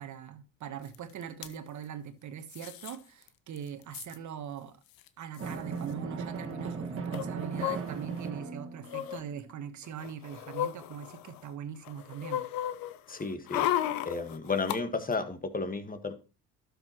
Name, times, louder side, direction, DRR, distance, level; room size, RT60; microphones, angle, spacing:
voice 1, 0.0-4.8 5.2-12.4, right 8 dB, 50° right, 1.4 m, -41 dB
sound 1, 0.9-1.0 1.2-1.5 2.5-3.0 3.3-3.4 3.6-4.2 5.0-5.1 5.3-5.5 7.1-8.3 8.8-9.2 9.8-11.5 11.9-14.8 15.1-15.2, left 12 dB, 70° left, 0.9 m, -34 dB
Drum, 5.4-9.2, right 5 dB, 35° right, 2.0 m, -37 dB
voice 2, 13.1-13.7 14.0-16.1, left 4 dB, 25° left, 1.7 m, -33 dB
12.0 x 6.7 x 3.1 m
hypercardioid pair, 65°, 36 cm